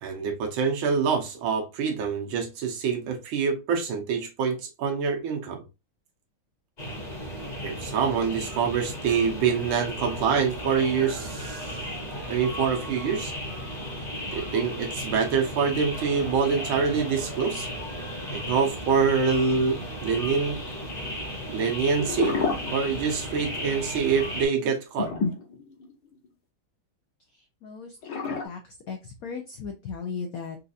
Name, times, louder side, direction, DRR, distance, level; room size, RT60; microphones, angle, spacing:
voice 1, 0.0-5.6 7.6-11.7 12.3-13.3 14.3-17.7 18.3-20.6 21.5-22.4 22.7-25.1, right 6 dB, 80° right, 1.7 m, -26 dB
sound 1, 6.8-24.4, equal, 30° left, 0.9 m, -35 dB
sound 2, 22.0-23.4 23.7-23.8 25.0-26.3 28.0-28.5, left 4 dB, 60° left, 1.6 m, -29 dB
voice 2, 27.3-28.0 28.4-30.6, left 5 dB, 80° left, 0.8 m, -37 dB
4.4 x 2.4 x 2.6 m
omnidirectional pair, 2.2 m